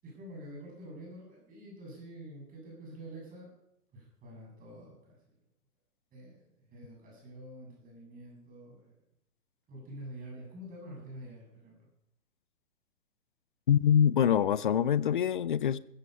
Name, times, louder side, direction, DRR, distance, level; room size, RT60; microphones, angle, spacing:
voice 1, 0.0-3.5 3.9-5.4 6.1-9.0 9.7-11.9, right 1 dB, 15° right, 7.7 m, -47 dB
voice 2, 13.7-15.8, left 9 dB, 35° left, 0.5 m, -25 dB
15.5 x 15.0 x 5.5 m
figure-of-eight pair, 125°, 47 cm